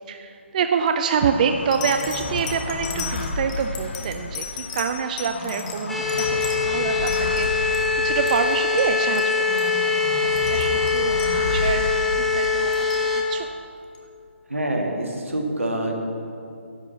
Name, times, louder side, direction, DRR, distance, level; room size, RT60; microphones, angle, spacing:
voice 1, 0.1-10.0 10.5-11.9 12.2-13.5, right 6 dB, 35° right, 7 dB, 0.4 m, -26 dB
sound 1, 0.9-1.1 1.7-7.9 8.2-8.9 9.1-9.3 9.6-9.8 10.2-11.8 12.4-13.1 13.9-14.0, left 8 dB, 30° left, 0.9 m, -36 dB
sound 2, 1.1-13.5, left 2 dB, 55° left, 1.1 m, -33 dB
sound 3, 5.9-13.2, left 4 dB, 5° left, 0.6 m, -23 dB
voice 2, 14.5-15.9, right 1 dB, 80° right, 2 dB, 1.5 m, -26 dB
10.0 x 4.8 x 7.0 m, 2.6 s
figure-of-eight pair, 140°, 7 cm